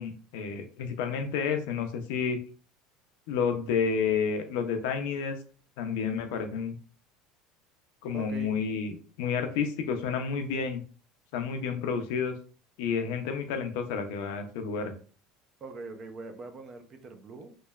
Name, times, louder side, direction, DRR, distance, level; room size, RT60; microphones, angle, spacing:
voice 1, 0.0-2.4 3.3-5.4 5.8-6.8 8.0-10.8 11.3-12.4 12.8-14.9, left 6 dB, 75° left, 6 dB, 0.5 m, -30 dB
voice 2, 8.1-8.5 15.6-17.5, right 3 dB, 30° right, 6 dB, 0.4 m, -42 dB
3.0 x 2.1 x 2.3 m, 0.39 s
cardioid pair, 150°, 0 cm